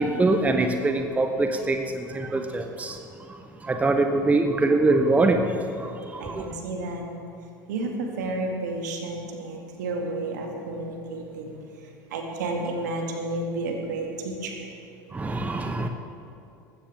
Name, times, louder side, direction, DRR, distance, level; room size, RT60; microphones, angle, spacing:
voice 1, 0.0-3.0 3.6-6.5 15.1-15.9, right 2 dB, 15° right, 6 dB, 0.9 m, -23 dB
voice 2, 6.2-7.1 7.7-11.6 12.1-14.7, right 2 dB, 65° right, 2 dB, 2.4 m, -31 dB
20.0 x 16.0 x 3.7 m, 2.7 s
figure-of-eight pair, 75°, 11 cm